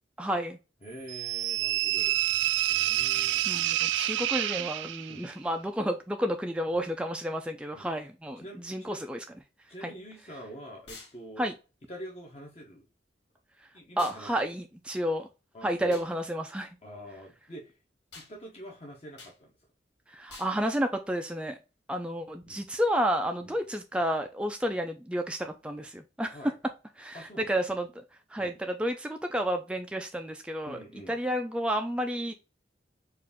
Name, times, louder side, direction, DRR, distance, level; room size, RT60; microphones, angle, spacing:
voice 1, 0.2-0.6 3.5-9.2 9.8-9.9 11.4-11.5 14.0-15.3 15.6-16.7 20.1-21.6 21.9-26.4 27.0-28.0 28.3-30.8 31.1-32.3, equal, 5° right, 0.3 m, -31 dB
voice 2, 0.8-2.2 2.7-3.8 5.1-5.3 6.7-6.8 7.7-8.1 8.4-9.0 9.7-11.5 11.9-12.8 13.7-14.5 15.5-16.0 16.8-17.8 18.1-19.5 22.5-22.7 23.4-23.6 26.3-26.5 27.1-27.5 28.4-28.6 30.7-31.2, equal, 35° left, 0.9 m, -46 dB
sound 1, 1.1-5.3, right 13 dB, 90° right, 0.3 m, -28 dB
sound 2, 10.9-11.2 14.0-14.2 15.9-16.1 18.1-18.3 19.2-19.4 20.3-20.6, left 3 dB, 80° left, 2.3 m, -47 dB
4.7 x 2.4 x 3.5 m
head